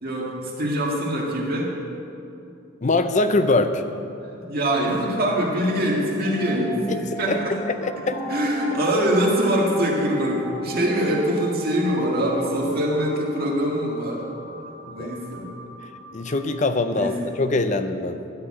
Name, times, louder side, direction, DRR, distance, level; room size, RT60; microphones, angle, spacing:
voice 1, 0.0-1.7 4.2-6.8 7.2-7.6 8.1-14.2 14.9-15.5 16.9-17.2, equal, 45° right, -3 dB, 1.9 m, -23 dB
voice 2, 2.8-3.8 6.9-7.0 7.3-7.4 7.7-8.2 15.0-15.1 16.1-18.2, left 2 dB, 35° left, 9 dB, 0.5 m, -23 dB
sound 1, 6.2-17.2, right 1 dB, 20° left, 2.3 m, -39 dB
12.5 x 4.5 x 8.5 m, 2.7 s
head